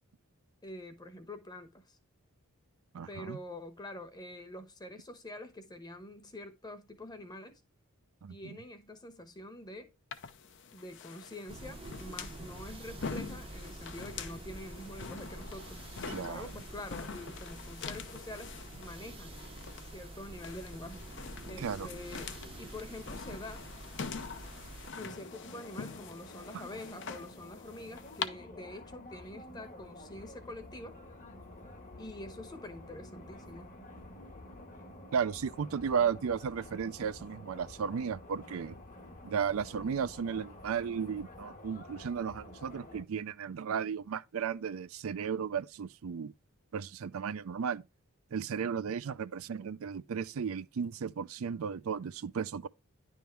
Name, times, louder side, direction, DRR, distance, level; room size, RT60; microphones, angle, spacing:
voice 1, 0.6-2.0 3.1-7.6 8.3-9.9 10.7-19.4 19.9-21.1 21.5-23.6 25.0-31.0 32.0-33.7, left 1 dB, 20° left, 1.0 m, -46 dB
voice 2, 2.9-3.4 8.2-8.4 16.1-16.5 21.6-21.9 35.1-38.7 39.2-46.3 46.7-47.8 48.3-52.7, right 7 dB, 70° right, 0.4 m, -34 dB
sound 1, 10.1-28.3, left 5 dB, 55° left, 0.7 m, -44 dB
sound 2, 11.5-24.9, right 2 dB, 25° right, 0.6 m, -47 dB
sound 3, 25.1-43.0, left 1 dB, 35° left, 1.2 m, -50 dB
10.5 x 3.6 x 4.5 m
head